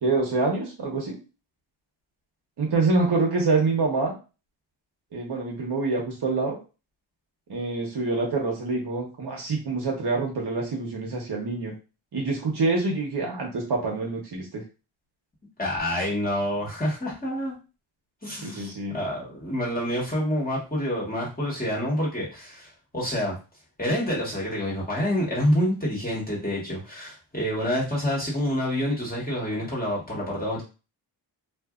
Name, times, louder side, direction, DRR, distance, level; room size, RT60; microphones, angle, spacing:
voice 1, 0.0-1.2 2.6-4.1 5.1-6.6 7.5-11.7 12.1-14.6 18.4-18.9, right 3 dB, 55° right, -1 dB, 1.1 m, -26 dB
voice 2, 15.6-17.5 18.2-23.4 23.8-30.6, equal, 20° left, -5 dB, 1.4 m, -27 dB
2.6 x 2.5 x 2.4 m, 0.31 s
cardioid pair, 75°, 48 cm